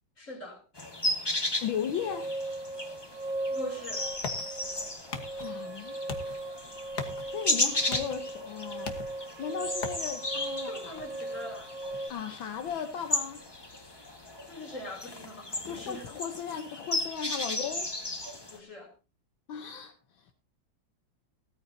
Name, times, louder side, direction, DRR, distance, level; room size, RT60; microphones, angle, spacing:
voice 1, 0.2-0.6 3.5-4.1 6.3-6.4 10.7-11.7 14.5-16.1 18.5-18.9, left 1 dB, 40° left, 3.8 m, -42 dB
sound 1, 0.8-18.6, left 2 dB, 15° left, 1.2 m, -35 dB
voice 2, 1.6-2.3 5.4-6.0 7.3-9.0 9.4-10.9 12.1-13.4 15.7-17.9 19.5-20.3, left 8 dB, 75° left, 1.8 m, -36 dB
sound 2, 1.8-12.1, right 2 dB, 75° right, 1.7 m, -38 dB
sound 3, 3.5-15.0, left 4 dB, 55° left, 1.9 m, -45 dB
16.5 x 14.0 x 2.8 m
omnidirectional pair, 2.2 m